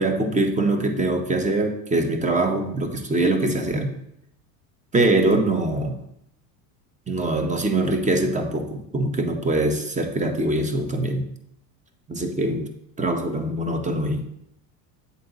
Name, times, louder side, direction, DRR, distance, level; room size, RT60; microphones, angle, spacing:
voice 1, 0.0-3.9 4.9-6.0 7.1-11.2 12.1-12.7 13.0-14.2, right 2 dB, 15° right, 5 dB, 0.8 m, -23 dB
7.7 x 4.0 x 3.9 m, 0.77 s
hypercardioid pair, 80°, 48 cm